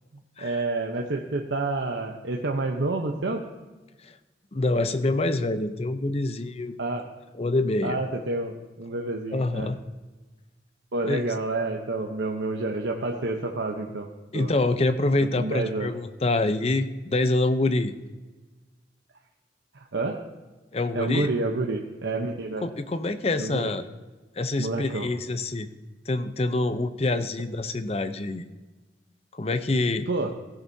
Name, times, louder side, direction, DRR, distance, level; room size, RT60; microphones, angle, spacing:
voice 1, 0.4-3.4 6.8-7.1 7.8-9.7 10.9-14.5 15.4-15.9 19.7-20.2 20.9-22.6 23.4-23.7 24.6-25.1 30.1-30.3, right 2 dB, 85° right, 1 dB, 0.9 m, -29 dB
voice 2, 4.5-6.7 7.3-8.0 9.3-9.8 11.0-11.2 14.3-17.9 20.7-21.3 22.6-23.8 24.4-25.7 26.1-28.4 29.3-30.1, left 2 dB, 35° left, 11 dB, 0.6 m, -26 dB
16.0 x 10.5 x 2.7 m, 1.2 s
head